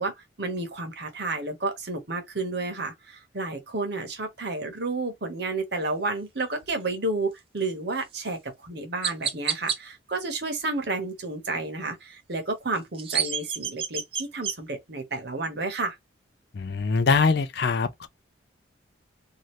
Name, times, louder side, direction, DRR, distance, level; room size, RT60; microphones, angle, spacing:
voice 1, 0.0-16.0, right 3 dB, 55° right, 1.0 m, -31 dB
Chirp tweet, 8.1-8.3 9.0-9.8 12.7-14.6, right 7 dB, 30° right, 0.4 m, -29 dB
voice 2, 16.6-18.1, left 4 dB, 55° left, 0.4 m, -23 dB
2.8 x 2.5 x 3.1 m
head